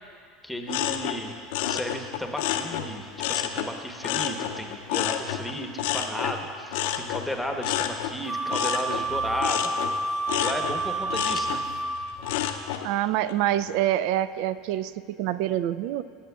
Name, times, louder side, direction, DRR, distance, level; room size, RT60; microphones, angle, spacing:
voice 1, 0.4-1.3 1.7-9.7 10.4-11.6, equal, 5° left, 4 dB, 1.0 m, -34 dB
sound 1, 0.7-3.7 4.0-12.9 13.3-13.8, left 10 dB, 65° left, 0.5 m, -30 dB
Wind instrument woodwind instrument, 8.3-12.3, right 2 dB, 35° right, 0.9 m, -29 dB
voice 2, 12.8-16.0, right 13 dB, 60° right, 15 dB, 0.3 m, -26 dB
17.5 x 8.7 x 2.4 m, 2.2 s
hypercardioid pair, 75°, 0 cm